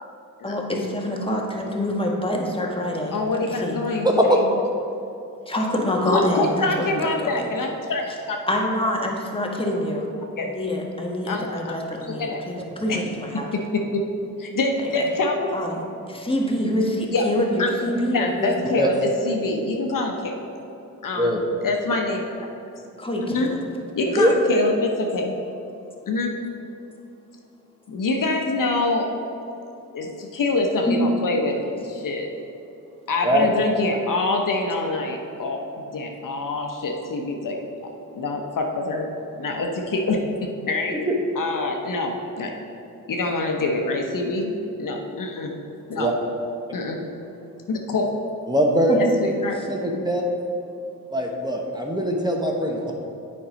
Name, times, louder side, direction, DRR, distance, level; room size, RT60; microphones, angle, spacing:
voice 1, 0.4-3.2 3.5-3.8 5.5-7.5 8.5-10.1 10.4-13.5 14.8-15.1 15.5-15.8 16.1-18.5 23.0-23.6 24.0-24.1 30.9-31.0 48.9-49.0 49.7-49.8, left 1 dB, 15° left, -1 dB, 1.6 m, -26 dB
voice 2, 3.1-4.6 6.0-8.4 10.4-10.5 11.3-11.8 12.1-12.4 12.9-13.0 13.5-14.0 14.4-15.5 17.1-17.2 17.6-17.7 18.1-20.3 21.0-22.2 23.3-23.5 24.0-25.4 26.1-26.3 27.9-29.1 29.9-32.3 33.1-35.6 35.9-37.6 38.1-39.0 39.4-40.2 40.7-41.0 41.3-42.1 42.4-42.5 43.1-44.5 44.8-45.5 45.9-46.1 46.7-47.0 47.7-48.1 49.2-49.6 49.9-50.0, left 2 dB, 60° left, 2 dB, 1.1 m, -25 dB
voice 3, 4.0-4.4 18.8-18.9 21.2-21.4 24.2-24.3 33.2-33.5 40.9-41.2 46.0-46.1 48.5-49.0 49.7-50.2 51.1-52.9, equal, 10° right, 0 dB, 1.2 m, -21 dB
8.5 x 5.4 x 5.2 m, 2.8 s
cardioid pair, 55°, 36 cm